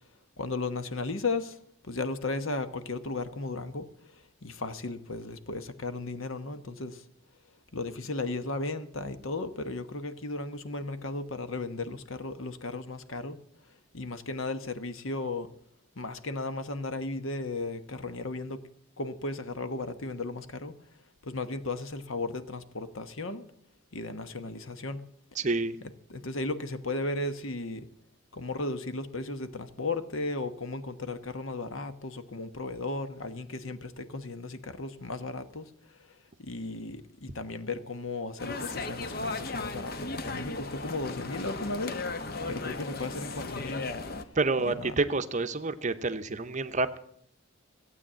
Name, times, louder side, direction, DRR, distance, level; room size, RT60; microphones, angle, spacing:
voice 1, 0.4-1.6 1.8-3.9 4.4-7.0 7.7-13.4 13.9-15.5 16.0-18.6 19.0-20.7 21.2-23.4 23.9-25.0 26.1-27.9 28.3-35.6 36.4-39.9 40.2-42.0 42.5-43.9 44.6-44.9, left 2 dB, 70° left, 1.1 m, -35 dB
voice 2, 25.4-25.8 44.4-47.0, right 3 dB, 35° right, 0.7 m, -28 dB
sound 1, 38.4-44.2, left 3 dB, 45° left, 0.9 m, -36 dB
15.5 x 8.5 x 7.4 m
head